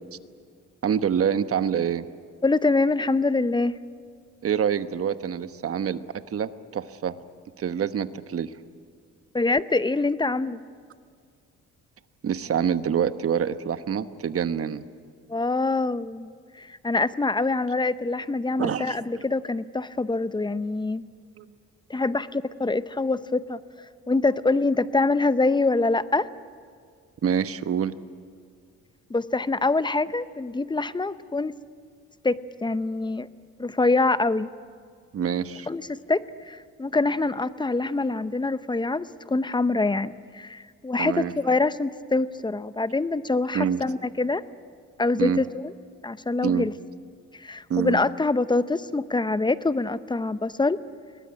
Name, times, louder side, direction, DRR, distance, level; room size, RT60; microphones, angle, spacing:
voice 1, 0.8-2.0 4.4-7.1 7.6-8.5 12.2-14.8 18.6-19.2 21.4-21.5 27.2-27.9 35.1-35.7 41.0-41.3 43.5-43.8 45.2-45.4 46.4-46.7 47.7-48.0, right 8 dB, 50° right, 11 dB, 1.1 m, -26 dB
voice 2, 2.4-3.8 9.3-10.6 15.3-16.3 16.6-21.0 21.9-23.6 24.1-26.3 29.1-31.5 32.2-33.3 33.6-34.5 35.7-44.4 45.0-45.7 46.0-46.7 47.4-50.8, left 3 dB, 15° left, 14 dB, 0.7 m, -25 dB
22.5 x 19.0 x 9.8 m, 2.1 s
cardioid pair, 90°, 30 cm